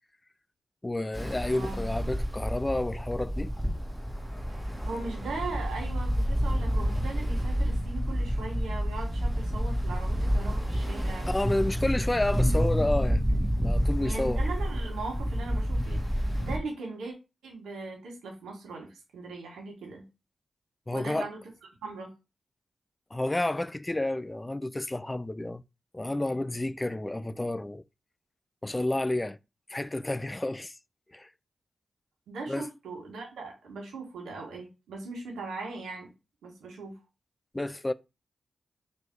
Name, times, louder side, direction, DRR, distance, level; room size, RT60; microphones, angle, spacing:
voice 1, 0.8-3.5 11.3-14.4 20.9-21.3 23.1-25.6 25.9-27.8 28.6-29.4 29.7-30.7 31.1-31.3 32.5-32.7 37.5-37.9, left 1 dB, 20° left, 0.4 m, -30 dB
Ocean, 1.1-16.6, equal, ahead, 1.8 m, -29 dB
voice 2, 1.5-1.9 4.8-11.3 14.0-17.1 17.4-20.0 20.9-21.4 21.8-22.1 32.3-36.1 36.4-37.0, right 3 dB, 90° right, 1.6 m, -39 dB
3.3 x 3.1 x 4.6 m
supercardioid pair, 45°, 0 cm